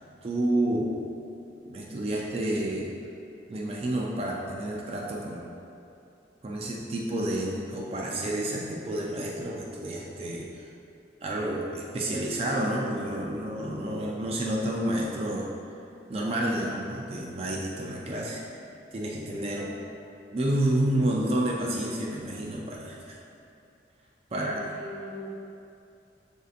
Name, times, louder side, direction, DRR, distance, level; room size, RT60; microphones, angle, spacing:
voice 1, 0.2-1.0 1.6-3.0 3.5-5.4 6.4-10.7 11.2-15.5 16.1-18.4 18.9-19.7 20.3-23.2 24.3-24.6, right 1 dB, 35° right, -2 dB, 0.4 m, -29 dB
voice 2, 24.3-25.3, left 1 dB, 50° right, -6 dB, 1.0 m, -41 dB
7.2 x 2.7 x 2.4 m, 2.7 s
head